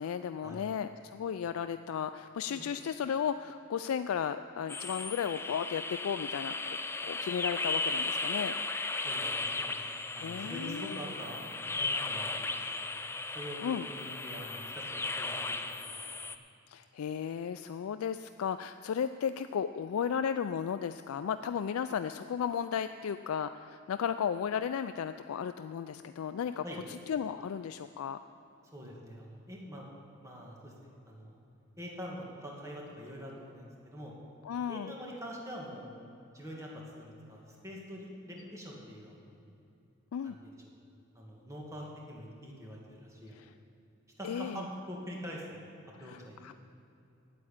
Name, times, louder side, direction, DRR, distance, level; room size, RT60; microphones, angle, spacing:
voice 1, 0.0-6.8 7.0-8.5 10.2-11.0 13.6-13.9 16.7-26.6 27.1-28.2 34.5-34.9 40.1-40.4 43.4-43.5 44.2-44.6 46.0-46.5, left 7 dB, 85° left, 10 dB, 0.3 m, -34 dB
sound 1, 4.7-16.4, left 3 dB, 10° left, 0.4 m, -36 dB
voice 2, 9.0-9.8 10.1-12.9 13.3-15.5 15.8-15.9 26.6-26.8 28.7-29.9 30.2-31.4 31.8-34.1 34.7-36.0 36.3-39.4 40.2-40.5 41.1-43.4 44.2-45.6 46.0-46.4, equal, 15° right, -3 dB, 2.1 m, -45 dB
9.2 x 8.5 x 8.8 m, 2.8 s
head